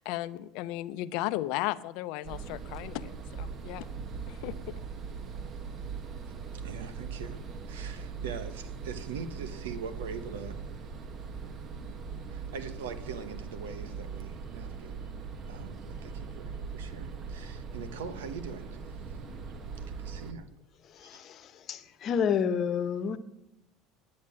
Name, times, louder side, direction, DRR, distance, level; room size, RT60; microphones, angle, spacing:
voice 1, 0.0-3.9 4.3-4.6, left 16 dB, 70° left, 0.6 m, -35 dB
sound 1, 2.2-20.3, right 5 dB, 45° right, 1.4 m, -40 dB
voice 2, 6.5-7.4 7.7-10.6 12.3-15.0 15.4-19.2 19.9-20.5 21.0-21.2, right 6 dB, 90° right, 1.2 m, -42 dB
voice 3, 20.8-23.2, left 7 dB, 45° left, 1.1 m, -30 dB
10.5 x 8.7 x 8.6 m
supercardioid pair, 100°, 0 cm